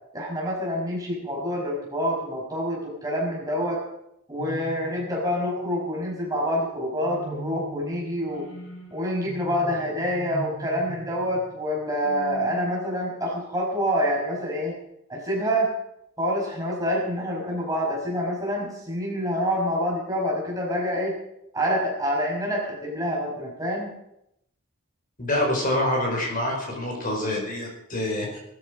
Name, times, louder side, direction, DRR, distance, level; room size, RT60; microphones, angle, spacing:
voice 1, 0.1-3.8 4.3-8.5 8.9-14.7 15.1-15.7 16.2-21.2 21.5-23.9, equal, 15° right, -3 dB, 5.7 m, -27 dB
sound 1, 4.4-5.5 7.0-13.5, right 1 dB, 55° left, 5.7 m, -40 dB
voice 2, 25.2-28.4, left 1 dB, 40° left, 0 dB, 5.1 m, -26 dB
20.0 x 13.0 x 5.3 m, 0.80 s
head